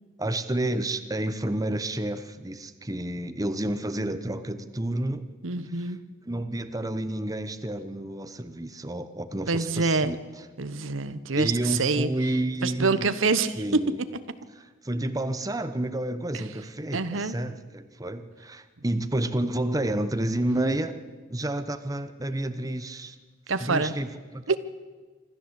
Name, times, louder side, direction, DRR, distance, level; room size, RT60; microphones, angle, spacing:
voice 1, 0.2-5.2 5.7-5.9 6.3-10.2 11.3-13.1 13.6-14.0 14.6-21.0 21.3-23.2 23.6-24.6, right 1 dB, 20° right, 10 dB, 1.0 m, -30 dB
voice 2, 5.4-6.0 9.5-10.1 10.6-12.1 12.6-13.8 16.3-16.4 16.9-17.3 23.5-23.9 24.5-24.6, right 3 dB, 90° right, 13 dB, 1.0 m, -26 dB
25.5 x 13.5 x 8.1 m, 1.4 s
head